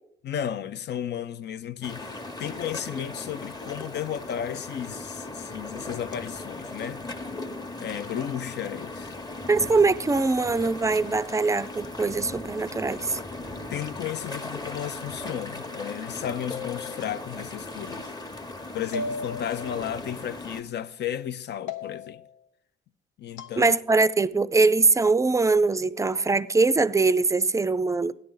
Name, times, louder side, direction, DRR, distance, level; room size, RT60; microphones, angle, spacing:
voice 1, 0.2-7.0 7.8-9.1 13.4-18.1 18.7-22.2 23.2-23.7, left 10 dB, 60° left, 0.5 m, -34 dB
sound 1, 1.8-20.6, left 2 dB, 20° left, 0.9 m, -38 dB
voice 2, 9.5-13.2 23.6-28.1, right 3 dB, 15° right, 0.4 m, -22 dB
sound 2, 16.5-17.3 18.9-19.9 21.7-22.3 23.4-23.6, left 3 dB, 85° left, 0.8 m, -36 dB
13.0 x 10.5 x 3.9 m
cardioid pair, 90°, 20 cm